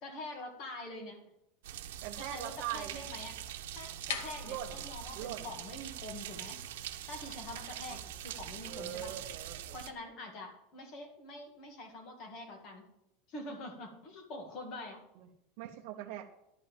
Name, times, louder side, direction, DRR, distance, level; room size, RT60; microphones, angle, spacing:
voice 1, 0.0-1.2 2.2-3.4 3.8-6.6 7.1-9.1 9.7-12.9 13.3-15.0, left 2 dB, 35° left, 4 dB, 1.9 m, -45 dB
sound 1, 1.6-9.9, right 12 dB, 90° right, 0.9 m, -44 dB
voice 2, 2.0-3.0 4.4-4.8 5.2-5.4 7.9-8.0 8.7-9.8 15.6-16.3, right 11 dB, 45° right, 0 dB, 0.9 m, -41 dB
sound 2, 3.8-9.8, left 6 dB, 80° left, 1.4 m, -48 dB
11.5 x 5.5 x 7.1 m, 0.83 s
supercardioid pair, 175°, 0 cm